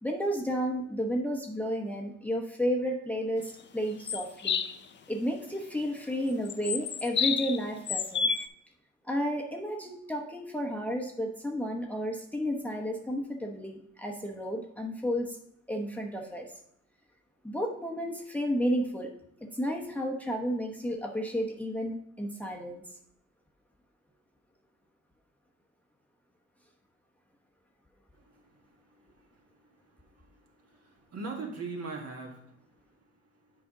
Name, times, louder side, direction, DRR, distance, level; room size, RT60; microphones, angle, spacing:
voice 1, 0.0-4.6 5.1-8.3 9.0-15.4 15.7-16.5 17.4-19.1 19.5-22.8, equal, 5° left, 1 dB, 0.9 m, -32 dB
sound 1, 4.1-4.7 6.5-7.6 7.9-8.5, left 6 dB, 40° left, 0.5 m, -29 dB
voice 2, 28.1-33.4, right 4 dB, 55° right, 0 dB, 1.8 m, -43 dB
7.7 x 5.0 x 3.8 m, 0.74 s
cardioid pair, 90°, 30 cm